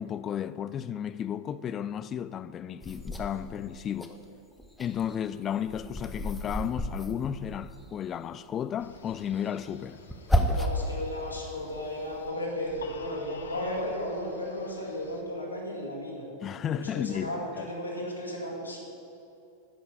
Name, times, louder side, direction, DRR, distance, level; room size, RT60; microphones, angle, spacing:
voice 1, 0.0-4.2 4.8-10.0 10.3-10.6 16.4-17.3 17.5-17.7, left 9 dB, 25° left, 0.3 m, -33 dB
sound 1, 2.8-4.1 4.5-8.1 9.1-10.9 11.4-12.3, equal, 5° left, 0.7 m, -32 dB
Telephone, 8.8-15.2, left 1 dB, 65° left, 0.8 m, -46 dB
voice 2, 10.5-16.3 16.7-18.8, left 1 dB, 85° left, 1.9 m, -35 dB
10.5 x 5.2 x 7.0 m
figure-of-eight pair, 90°, 0 cm